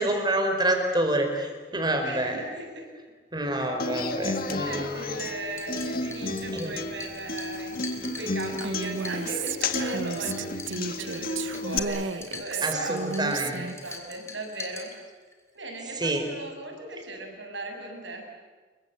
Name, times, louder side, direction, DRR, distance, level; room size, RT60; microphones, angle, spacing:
voice 1, 0.0-2.4 3.3-5.1 6.5-6.7 12.6-13.6 15.9-16.2, right 1 dB, 20° right, 4 dB, 4.7 m, -27 dB
voice 2, 2.0-2.9 4.2-14.9 15.5-18.3, right 2 dB, 70° right, 3 dB, 7.4 m, -38 dB
Human voice / Acoustic guitar, 3.8-11.8, left 3 dB, 50° left, 1.8 m, -32 dB
sound 1, 5.4-15.4, left 3 dB, 15° left, 3.2 m, -44 dB
Female speech woman speaking, 8.6-14.0, right 5 dB, 85° right, 1.1 m, -33 dB
29.5 x 23.5 x 8.6 m, 1.4 s
head